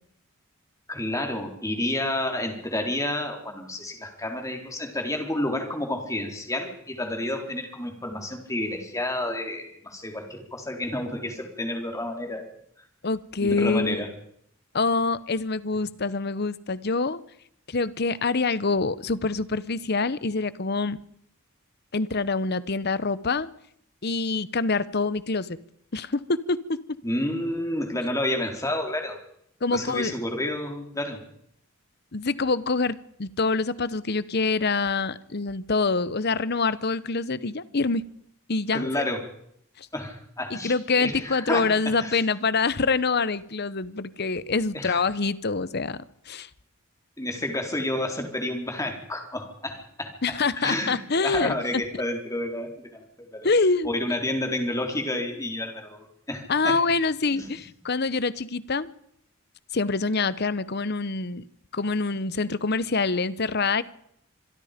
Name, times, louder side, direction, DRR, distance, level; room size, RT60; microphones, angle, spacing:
voice 1, 0.9-12.5 13.4-14.1 27.0-29.2 29.7-31.2 38.7-39.2 39.9-41.6 42.0-42.2 44.7-45.0 47.2-49.7 50.0-53.1 53.3-53.5 53.8-56.8 57.3-57.5, left 1 dB, 15° left, 3 dB, 3.9 m, -30 dB
voice 2, 13.0-14.0 14.7-17.2 17.7-21.0 21.9-23.5 24.0-25.6 25.9-26.8 29.6-30.1 32.1-38.0 38.5-38.9 39.8-39.9 40.5-46.0 46.3-46.5 50.2-51.5 53.4-53.9 56.5-58.9 59.7-61.4 61.7-63.8, left 4 dB, 50° left, 17 dB, 1.0 m, -25 dB
26.5 x 22.0 x 5.2 m, 0.71 s
head